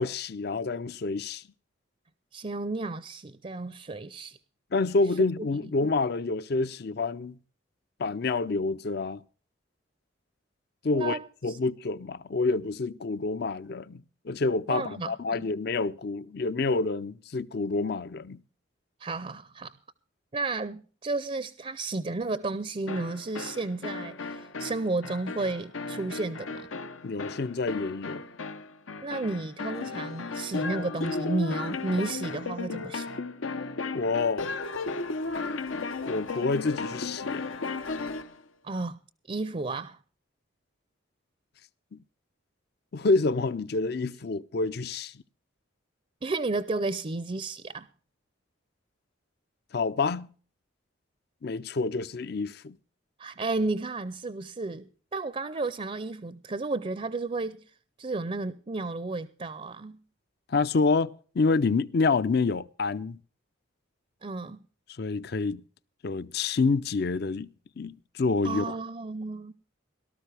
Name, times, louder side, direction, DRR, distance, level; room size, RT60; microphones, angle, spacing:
voice 1, 0.0-1.4 4.7-7.4 8.0-9.2 10.8-18.4 27.0-28.2 33.9-34.5 36.0-37.5 41.9-42.0 42.9-45.1 49.7-50.3 51.4-52.8 60.5-63.2 65.0-65.6 66.0-67.5 67.8-68.6, left 3 dB, 55° left, 0.5 m, -28 dB
voice 2, 2.3-4.4 5.4-5.5 10.9-11.6 14.7-15.4 19.0-19.7 20.3-26.7 29.0-33.1 38.6-39.0 39.3-40.0 46.2-47.9 53.2-57.6 58.0-60.0 64.2-64.6 68.4-69.5, right 3 dB, 30° right, 0.5 m, -32 dB
sound 1, 22.9-38.3, left 3 dB, 85° left, 0.9 m, -35 dB
18.0 x 13.0 x 3.4 m
head